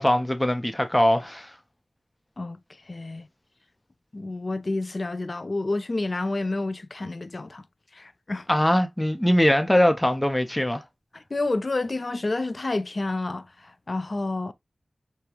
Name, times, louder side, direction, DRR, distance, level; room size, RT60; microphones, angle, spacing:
voice 1, 0.0-1.5 8.5-10.8, left 1 dB, 15° left, 0.8 m, -21 dB
voice 2, 2.9-3.3 4.1-7.6 7.9-8.5 11.1-14.5, left 2 dB, 50° left, 0.6 m, -29 dB
6.7 x 2.3 x 3.0 m
cardioid pair, 40°, 0 cm